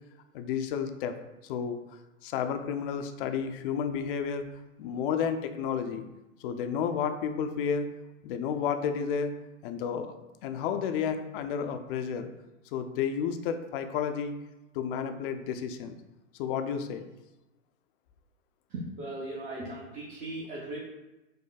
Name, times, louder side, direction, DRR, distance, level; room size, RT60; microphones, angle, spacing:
voice 1, 0.3-1.1 1.4-1.8 2.2-4.4 4.8-6.0 6.4-7.9 8.2-9.3 9.6-10.2 10.4-12.3 12.7-14.3 14.7-15.9 16.3-17.0, left 7 dB, 45° left, 8 dB, 0.5 m, -31 dB
voice 2, 18.7-20.8, right 1 dB, 20° right, -4 dB, 0.6 m, -38 dB
5.2 x 2.1 x 3.9 m, 1.0 s
hypercardioid pair, 110°, 40 cm